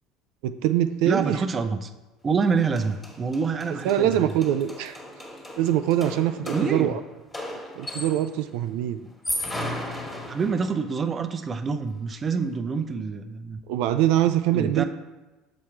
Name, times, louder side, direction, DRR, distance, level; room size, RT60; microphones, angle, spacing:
voice 1, 0.4-1.4 3.8-5.0 5.6-7.0 7.8-9.0 13.7-14.8, right 12 dB, 80° right, 10 dB, 0.3 m, -23 dB
voice 2, 1.0-1.9 2.2-4.2 6.5-7.0 9.0-9.1 10.3-13.6 14.5-14.8, right 5 dB, 25° right, 8 dB, 0.5 m, -27 dB
sound 1, 2.4-2.5 2.8-8.4 9.1-10.9, left 1 dB, 15° left, 1.6 m, -35 dB
7.2 x 4.7 x 4.5 m, 1.1 s
cardioid pair, 125°, 0 cm